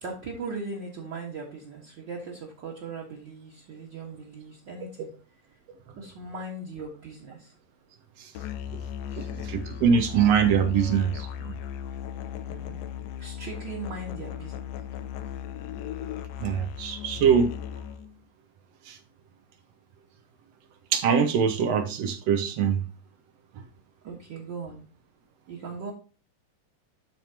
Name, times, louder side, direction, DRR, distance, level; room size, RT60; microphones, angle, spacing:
voice 1, 0.0-5.1 5.9-7.5 9.1-9.3 12.5-12.8 13.2-14.7 24.0-24.9 25.5-25.9, right 3 dB, 45° right, -2 dB, 1.8 m, -39 dB
Musical instrument, 8.4-18.1, left 9 dB, 75° left, 1.6 m, -37 dB
voice 2, 9.2-11.5 16.4-17.5 18.9-19.0 20.9-22.8, right 7 dB, 70° right, 8 dB, 1.6 m, -23 dB
12.5 x 4.3 x 2.9 m, 0.36 s
omnidirectional pair, 3.4 m